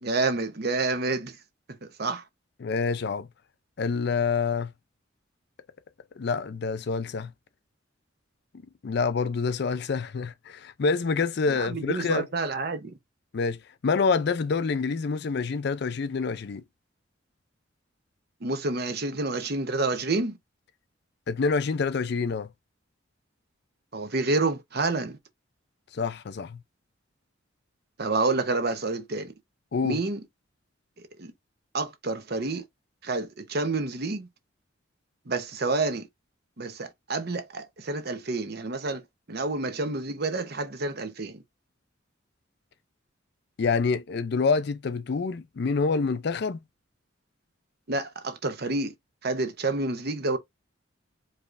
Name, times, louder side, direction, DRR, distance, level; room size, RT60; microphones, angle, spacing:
voice 1, 0.0-1.4 1.8-2.2 11.5-13.0 18.4-20.4 23.9-25.2 28.0-29.3 29.8-30.2 31.2-31.3 31.7-32.6 33.0-34.3 35.3-36.1 36.6-39.0 39.3-41.4 47.9-48.9 49.2-50.4, right 3 dB, 55° right, 0.9 m, -29 dB
voice 2, 2.6-3.3 3.8-4.7 6.2-7.3 8.8-12.3 13.3-16.6 21.3-22.5 25.9-26.6 29.7-30.0 43.6-46.6, left 4 dB, 60° left, 0.4 m, -27 dB
4.9 x 3.0 x 2.5 m
head